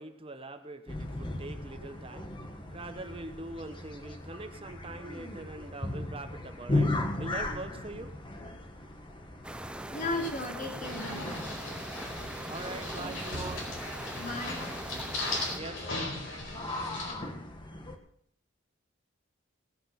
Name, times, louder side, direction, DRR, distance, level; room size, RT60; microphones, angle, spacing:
voice 1, 0.0-2.3 2.7-8.1 12.5-13.7 15.5-15.9, right 2 dB, 25° right, 8 dB, 1.0 m, -43 dB
sound 1, 0.9-18.0, left 2 dB, 25° left, 1.4 m, -38 dB
sound 2, 9.4-15.6, right 1 dB, 5° right, 0.5 m, -41 dB
voice 2, 9.9-11.3 14.2-14.6, left 2 dB, 40° left, 1 dB, 3.3 m, -36 dB
sound 3, 10.8-17.1, left 2 dB, 75° left, 4.5 m, -38 dB
17.5 x 8.9 x 5.8 m, 0.69 s
head